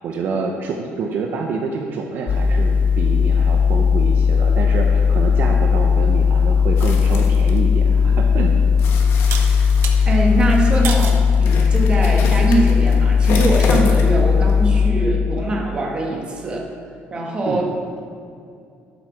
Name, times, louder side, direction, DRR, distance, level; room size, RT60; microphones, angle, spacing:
voice 1, 0.0-8.5 17.4-17.6, right 4 dB, 50° right, 2 dB, 0.8 m, -27 dB
sound 1, 2.3-14.9, left 6 dB, 30° left, 0.6 m, -16 dB
sound 2, 6.8-7.6 8.8-14.2 14.5-14.6, left 4 dB, 65° left, 1.3 m, -30 dB
voice 2, 9.2-9.7 10.0-16.7 17.1-17.7, right 2 dB, 25° right, -1 dB, 1.5 m, -22 dB
sound 3, 9.3-10.0 10.8-11.2 11.9-12.3, right 7 dB, 75° right, 1.1 m, -29 dB
12.0 x 8.1 x 4.8 m, 2.4 s
cardioid pair, 170°, 4 cm